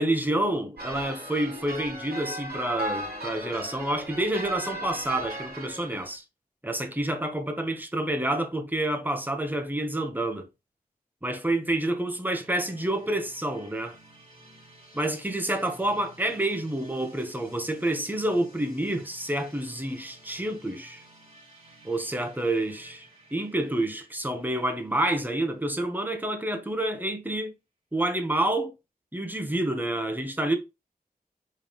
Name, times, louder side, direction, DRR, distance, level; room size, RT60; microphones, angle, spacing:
voice 1, 0.0-6.2 6.6-10.5 11.2-14.0 14.9-21.0 21.8-27.5 27.9-28.7 29.1-30.6, right 1 dB, 10° right, 1.6 m, -28 dB
sound 1, 0.8-6.1, right 1 dB, 80° right, 3.4 m, -36 dB
sound 2, 12.3-26.0, right 1 dB, 40° right, 3.5 m, -54 dB
5.5 x 3.7 x 5.5 m
wide cardioid pair, 65°, 16 cm